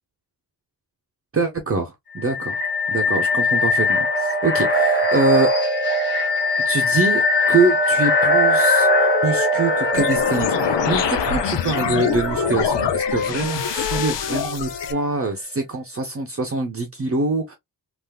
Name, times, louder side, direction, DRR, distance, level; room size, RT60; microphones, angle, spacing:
voice 1, 1.3-2.6 2.9-5.5 6.7-7.2 7.5-8.9 9.2-17.6, right 3 dB, 35° right, 0.7 m, -24 dB
sound 1, 2.2-12.9, left 2 dB, 25° left, 1.1 m, -21 dB
Wind instrument woodwind instrument, 8.3-15.1, left 4 dB, 45° left, 1.4 m, -30 dB
sound 2, 9.9-14.9, left 8 dB, 80° left, 0.6 m, -25 dB
3.6 x 2.5 x 2.3 m
wide cardioid pair, 125°, 42 cm